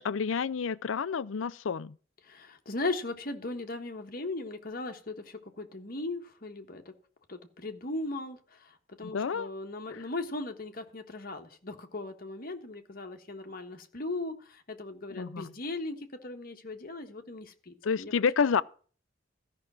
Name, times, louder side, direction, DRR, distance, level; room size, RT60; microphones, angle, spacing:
voice 1, 0.0-2.0 9.0-9.5 9.9-10.0 15.2-15.5 17.8-18.6, left 6 dB, 85° left, 0.5 m, -29 dB
voice 2, 2.2-6.9 7.3-18.2, left 2 dB, 50° left, 1.4 m, -38 dB
13.5 x 5.8 x 7.4 m
head